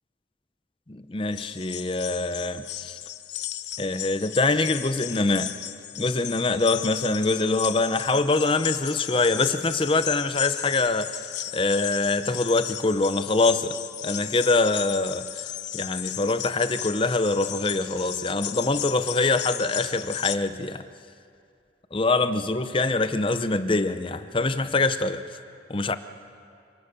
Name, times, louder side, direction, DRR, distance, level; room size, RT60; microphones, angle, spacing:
voice 1, 0.9-3.0 3.8-5.5 6.0-11.2 11.5-13.7 14.0-20.8 21.9-25.2 25.7-25.9, left 3 dB, 30° left, 0.7 m, -24 dB
sound 1, 1.3-20.4, left 12 dB, 75° left, 0.7 m, -35 dB
27.0 x 18.0 x 6.8 m
head